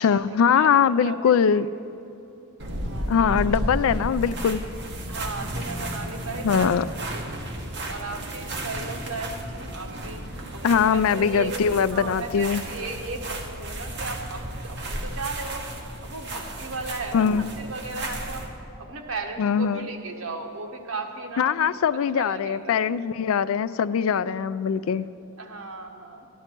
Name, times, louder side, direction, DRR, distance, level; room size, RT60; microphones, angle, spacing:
voice 1, 0.0-1.7 3.1-4.6 6.4-6.9 10.6-12.6 17.1-17.5 19.4-19.9 21.4-25.1, left 7 dB, 80° left, 16 dB, 0.3 m, -22 dB
voice 2, 0.5-1.6 2.8-3.5 4.0-4.1 5.1-7.4 7.8-11.5 11.9-18.4 18.8-21.7 22.2-22.8 25.4-26.3, right 3 dB, 85° right, 3 dB, 1.2 m, -36 dB
sound 1, 2.6-18.5, right 1 dB, 55° right, 1.4 m, -33 dB
13.5 x 11.0 x 4.5 m, 2.9 s
head